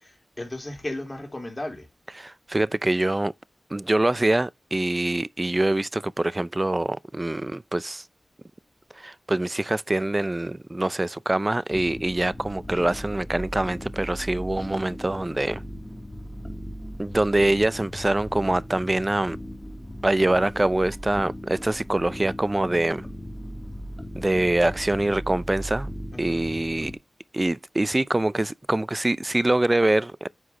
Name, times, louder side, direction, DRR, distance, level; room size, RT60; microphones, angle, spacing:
voice 1, 0.0-1.9 26.1-26.4, left 1 dB, 30° left, 4.1 m, -35 dB
voice 2, 2.2-3.3 3.7-8.0 8.9-15.6 17.0-19.4 20.0-23.1 24.2-25.9 26.2-26.9 27.3-30.3, right 2 dB, 30° right, 0.5 m, -24 dB
sound 1, 11.7-26.9, equal, 10° left, 3.0 m, -38 dB
9.7 x 6.0 x 3.0 m
cardioid pair, 40°, 0 cm